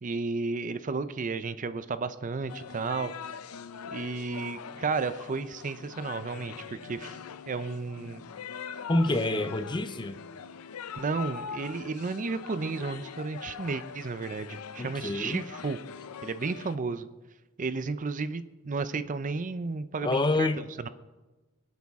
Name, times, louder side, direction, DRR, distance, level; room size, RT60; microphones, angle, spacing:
voice 1, 0.0-3.1 3.9-7.2 7.5-8.2 9.1-9.4 11.0-15.8 16.2-17.1 17.6-20.9, right 4 dB, 35° right, 13 dB, 0.5 m, -33 dB
sound 1, 2.5-16.8, left 7 dB, 85° left, 0.5 m, -42 dB
voice 2, 8.9-10.2 14.8-15.5 20.0-20.6, left 2 dB, 20° left, 11 dB, 0.6 m, -27 dB
24.0 x 8.2 x 3.6 m, 1.1 s
head